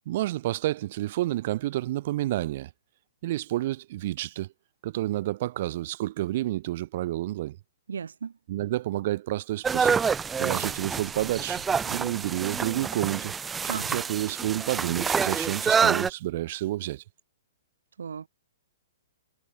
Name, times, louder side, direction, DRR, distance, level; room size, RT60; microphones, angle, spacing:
voice 1, 0.1-2.7 3.2-4.5 4.8-7.6 8.5-10.0 10.4-13.3 13.7-17.0, right 15 dB, 50° right, 0.7 m, -30 dB
voice 2, 7.9-8.3 13.7-14.0 18.0-18.3, right 6 dB, 85° right, 0.6 m, -35 dB
sound 1, 9.6-16.1, right 6 dB, 10° right, 0.4 m, -27 dB
hypercardioid pair, 145°, 0 cm